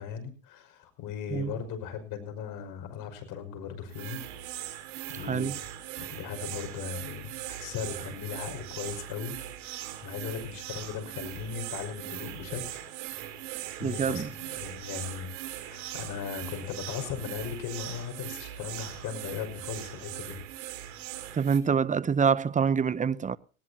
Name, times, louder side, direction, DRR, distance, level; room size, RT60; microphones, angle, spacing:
voice 1, 0.0-4.2 5.1-5.5 6.0-9.4 10.0-12.8 13.8-15.3 15.6-20.4, left 7 dB, 65° left, 5.8 m, -38 dB
sound 1, 3.9-21.6, right 13 dB, 85° right, 3.6 m, -40 dB
voice 2, 5.1-5.6 13.8-14.3 21.3-23.4, right 6 dB, 20° right, 0.8 m, -26 dB
19.0 x 18.5 x 2.8 m
supercardioid pair, 110°, 35 cm